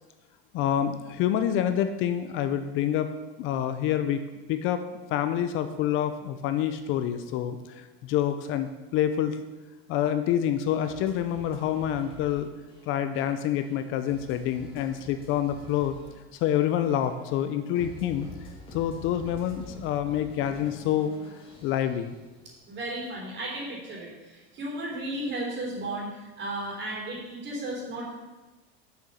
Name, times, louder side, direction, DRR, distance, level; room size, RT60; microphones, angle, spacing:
voice 1, 0.5-3.1 3.4-4.2 4.5-4.8 5.1-9.4 9.9-12.5 12.9-16.0 16.3-18.3 18.7-22.2, left 10 dB, 45° left, 9 dB, 0.5 m, -27 dB
sound 1, 10.8-22.8, left 1 dB, 20° left, 2.2 m, -48 dB
voice 2, 22.7-26.1 26.4-28.1, right 1 dB, 35° right, -3 dB, 3.6 m, -34 dB
7.1 x 6.2 x 6.7 m, 1.2 s
supercardioid pair, 140°, 29 cm